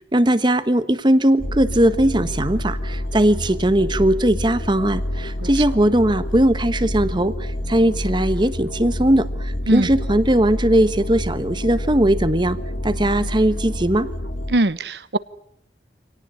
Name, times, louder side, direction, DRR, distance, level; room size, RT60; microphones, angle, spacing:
voice 1, 0.1-12.6 12.8-14.1, right 1 dB, 25° right, 13 dB, 1.2 m, -19 dB
sound 1, 1.4-14.5, left 1 dB, 80° left, 2.6 m, -28 dB
voice 2, 14.5-15.2, right 1 dB, 70° right, 15 dB, 1.0 m, -20 dB
26.0 x 18.5 x 10.0 m, 0.76 s
head